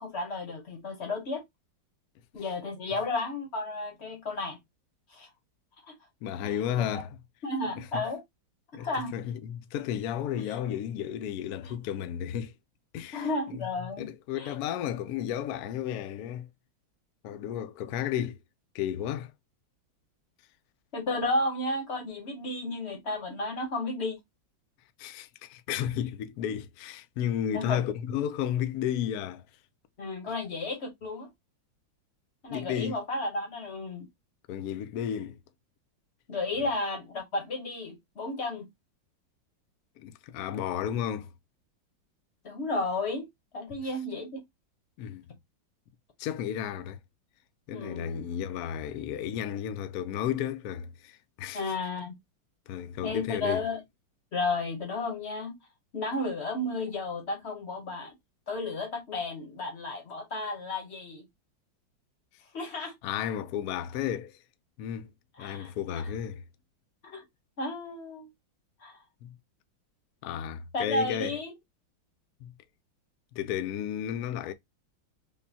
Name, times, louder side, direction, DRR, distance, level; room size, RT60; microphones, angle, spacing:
voice 1, 0.0-1.4 2.3-4.6 5.1-5.3 5.9-6.0 6.8-7.0 7.4-8.2 8.8-9.1 13.1-14.1 14.4-14.5 17.3-17.4 20.9-24.2 27.5-27.8 30.0-31.3 32.4-34.1 36.3-38.7 42.4-43.3 43.5-44.4 47.7-48.2 51.5-52.1 53.0-53.8 54.3-55.5 55.9-58.1 58.5-61.3 62.5-62.9 65.4-65.7 67.0-67.2 67.6-68.3 68.8-69.0 70.7-71.5, left 2 dB, 50° left, 0.8 m, -33 dB
voice 2, 6.2-7.2 7.8-8.0 8.7-12.5 12.9-13.7 14.0-16.5 17.2-18.4 18.7-19.3 25.0-29.4 32.5-33.0 34.5-35.4 40.0-41.3 45.0-45.3 46.2-47.0 47.7-51.7 52.7-53.6 63.0-64.4 64.8-65.1 65.4-66.4 69.2-69.4 70.2-71.3 72.4-72.5 73.3-74.5, left 10 dB, 85° left, 0.8 m, -33 dB
5.2 x 2.2 x 2.7 m
omnidirectional pair, 2.1 m